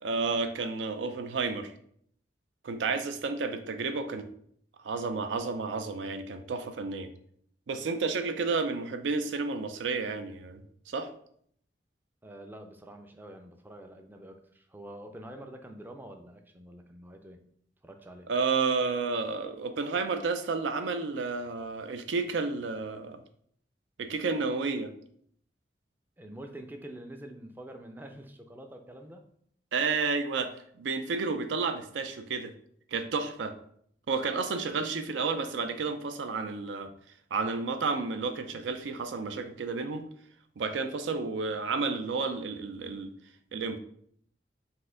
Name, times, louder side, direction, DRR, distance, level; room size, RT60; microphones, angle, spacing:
voice 1, 0.0-1.7 2.6-4.3 4.8-7.1 7.7-11.1 18.3-23.2 24.0-24.9 29.7-30.5 30.8-32.5 32.9-33.6 34.1-36.9 37.3-40.0 40.6-43.1 43.5-43.8, right 4 dB, 90° right, 9 dB, 0.4 m, -31 dB
voice 2, 12.2-17.5 17.8-18.3 26.2-29.3 34.7-34.9, right 1 dB, 10° right, 5 dB, 0.3 m, -46 dB
4.1 x 2.5 x 3.7 m, 0.65 s
head